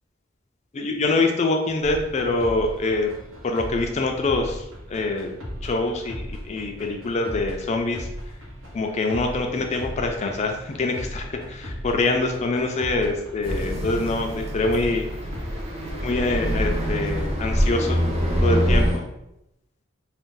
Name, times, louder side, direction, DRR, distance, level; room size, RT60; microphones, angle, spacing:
voice 1, 0.7-3.1 3.4-5.3 5.6-8.1 8.7-15.0 16.0-18.0 18.4-19.0, left 2 dB, 35° left, 3 dB, 0.4 m, -25 dB
sound 1, 1.8-17.3, equal, 85° right, 0.9 m, -37 dB
sound 2, 13.4-19.0, equal, 30° right, 0.5 m, -25 dB
2.6 x 2.1 x 3.7 m, 0.85 s
head